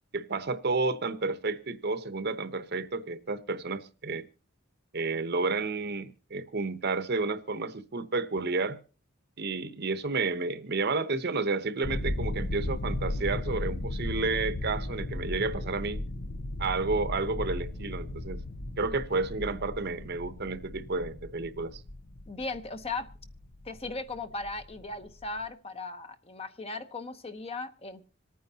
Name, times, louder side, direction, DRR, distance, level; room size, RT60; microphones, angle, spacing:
voice 1, 0.1-4.3 4.9-8.8 9.4-16.0 16.6-18.4 18.8-21.8, right 3 dB, 50° right, 0.9 m, -31 dB
sound 1, 11.8-25.5, left 1 dB, 55° left, 0.8 m, -36 dB
voice 2, 22.3-23.1 23.6-28.0, left 3 dB, 30° left, 0.9 m, -37 dB
26.5 x 9.4 x 2.8 m
head